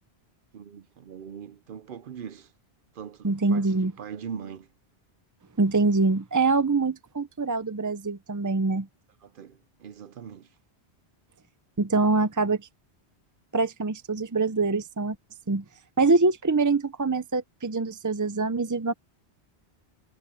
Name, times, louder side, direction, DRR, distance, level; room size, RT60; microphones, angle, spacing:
voice 1, 0.5-2.5 2.9-4.7 9.2-10.5, right 7 dB, 60° right, 0.7 m, -41 dB
voice 2, 3.2-3.9 5.6-8.9 11.8-12.7 13.5-15.2 15.5-15.6 16.0-18.9, right 3 dB, 25° right, 0.4 m, -24 dB
omnidirectional pair, 1.1 m